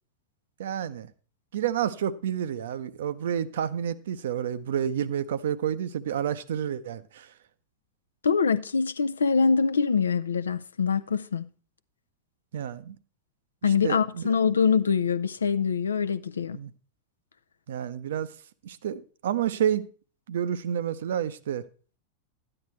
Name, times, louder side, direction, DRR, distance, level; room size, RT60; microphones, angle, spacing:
voice 1, 0.6-1.1 1.5-7.3 12.5-13.0 13.8-14.3 16.5-16.7 17.7-18.3 18.6-19.9 20.3-21.6, right 9 dB, 60° right, 0.6 m, -29 dB
voice 2, 8.2-11.5 13.6-16.6, left 5 dB, 70° left, 0.5 m, -24 dB
12.5 x 9.7 x 3.2 m
figure-of-eight pair, 90°, 0 cm